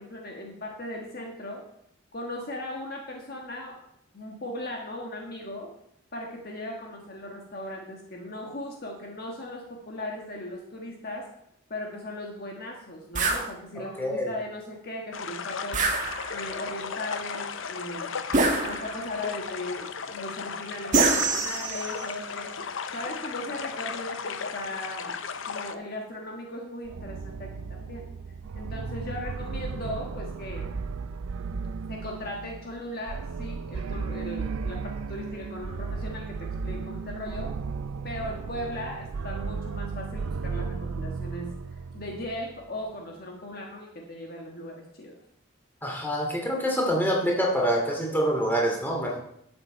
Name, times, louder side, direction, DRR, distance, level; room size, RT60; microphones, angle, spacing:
voice 1, 0.0-1.6 2.1-3.8 4.1-5.7 6.1-11.3 11.7-18.3 18.6-22.6 22.9-25.2 25.4-28.1 28.5-30.7 31.9-37.5 38.0-45.2, left 1 dB, 45° left, 0 dB, 1.4 m, -38 dB
sound 1, 13.1-13.5 15.7-16.5 18.3-19.1 20.9-22.0, right 3 dB, 35° right, 1.5 m, -25 dB
voice 2, 14.0-14.3 45.8-49.2, equal, 10° left, -1 dB, 2.5 m, -26 dB
sound 2, 15.1-25.7, left 6 dB, 65° left, 0.7 m, -36 dB
sound 3, 26.8-42.5, right 4 dB, 80° right, 0.4 m, -35 dB
11.5 x 7.7 x 4.4 m, 0.73 s
head